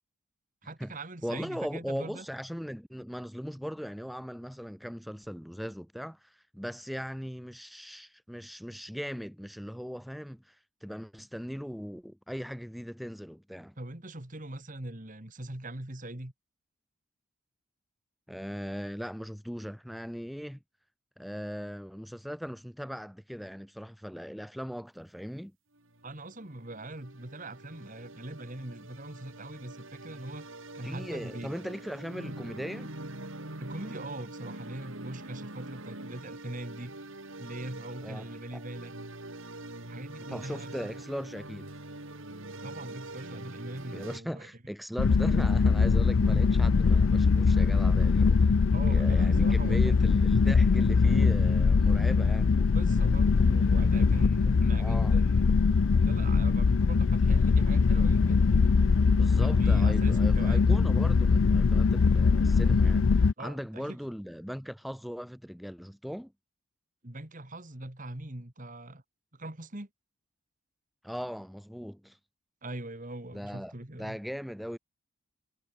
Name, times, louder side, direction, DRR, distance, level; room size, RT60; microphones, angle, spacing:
voice 1, 0.6-2.3 13.8-16.3 26.0-30.5 30.7-31.6 33.6-36.9 37.4-38.9 39.8-41.1 42.6-44.5 48.7-50.1 52.5-55.5 56.0-58.8 59.4-60.7 63.4-64.0 67.0-69.0 69.3-69.9 72.6-74.2, right 1 dB, 35° right, 2.1 m, -42 dB
voice 2, 1.2-10.5 10.8-13.7 18.3-20.6 21.2-25.5 30.8-32.9 38.0-38.3 38.5-38.6 40.3-41.7 43.9-48.5 48.9-52.5 54.8-55.2 59.1-63.1 63.4-66.3 71.0-72.2 73.3-74.8, equal, ahead, 4.1 m, -39 dB
sound 1, 25.8-44.2, right 2 dB, 65° right, 3.5 m, -44 dB
sound 2, 45.0-63.3, left 4 dB, 65° left, 0.5 m, -22 dB
head